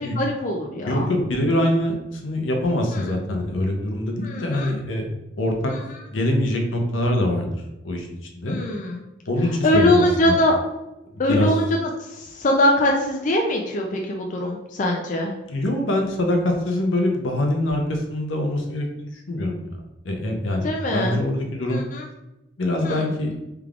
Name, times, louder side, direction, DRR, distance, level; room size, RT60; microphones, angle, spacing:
voice 1, 0.2-1.1 2.9-3.1 4.2-4.7 8.5-9.0 9.6-10.6 11.2-11.6 12.1-15.3 20.6-21.2 21.7-22.0 22.8-23.0, left 1 dB, 40° left, 0 dB, 0.4 m, -22 dB
voice 2, 0.9-5.0 5.4-5.7 6.1-7.5 7.8-8.6 9.3-10.4 11.1-11.6 15.5-19.8 20.0-21.8 22.6-23.4, left 1 dB, 80° left, 3 dB, 0.6 m, -24 dB
3.4 x 3.4 x 2.4 m, 0.95 s
head